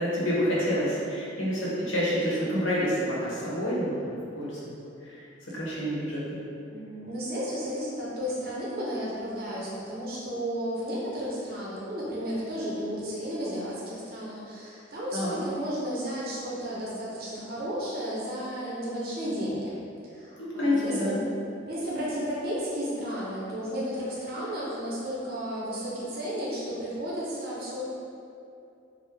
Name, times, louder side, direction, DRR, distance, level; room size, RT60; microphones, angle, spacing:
voice 1, 0.0-4.7 5.5-6.4 15.1-15.4 20.4-21.1, equal, 85° left, -7 dB, 0.9 m, -28 dB
voice 2, 6.7-19.8 20.0-21.2 21.7-27.9, equal, 50° right, -7 dB, 0.6 m, -33 dB
2.9 x 2.0 x 3.5 m, 2.6 s
head